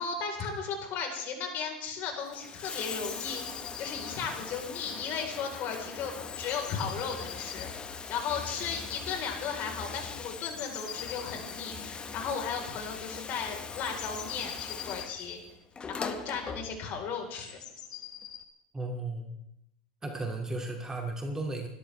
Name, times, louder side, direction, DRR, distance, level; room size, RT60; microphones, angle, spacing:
voice 1, 0.0-7.7 8.1-15.4 15.9-17.6, left 6 dB, 50° left, 3 dB, 4.3 m, -35 dB
Bathtub (filling or washing), 2.1-17.1 18.2-18.3, left 5 dB, 25° left, 1.3 m, -41 dB
sound 1, 3.0-4.2 5.4-5.6 5.8-5.9 6.2-7.7 10.3-11.7 12.9-13.0 13.2-13.3 13.7-15.4 17.3-18.4, left 9 dB, 85° left, 1.8 m, -44 dB
voice 2, 18.7-19.3 20.0-21.7, right 2 dB, 15° right, 2 dB, 2.5 m, -34 dB
28.5 x 13.0 x 3.5 m, 0.82 s
hypercardioid pair, 95°, 4 cm